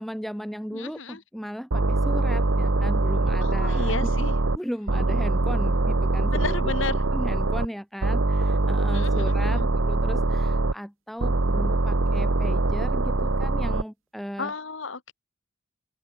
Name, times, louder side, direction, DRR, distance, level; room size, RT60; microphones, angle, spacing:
voice 1, 0.0-3.9 4.6-14.5, equal, ahead, 4.6 m, -36 dB
voice 2, 0.7-1.2 3.4-4.4 6.3-7.0 8.9-9.7 14.4-15.1, left 4 dB, 70° left, 1.5 m, -33 dB
sound 1, 1.7-4.6 4.9-7.7 8.0-10.7 11.2-13.8, right 2 dB, 80° right, 1.1 m, -23 dB
open air
head